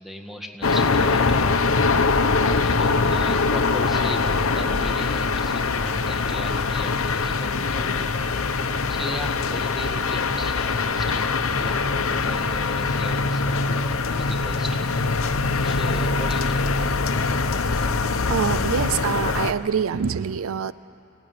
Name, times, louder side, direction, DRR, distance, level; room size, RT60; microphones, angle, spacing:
voice 1, 0.0-2.0 2.4-8.5 8.9-14.9 15.6-16.9, left 1 dB, ahead, 3 dB, 1.7 m, -38 dB
sound 1, 0.6-19.5, left 4 dB, 70° left, 0.9 m, -23 dB
voice 2, 18.3-20.7, right 6 dB, 70° right, 17 dB, 0.4 m, -25 dB
26.0 x 17.0 x 9.3 m, 2.9 s
head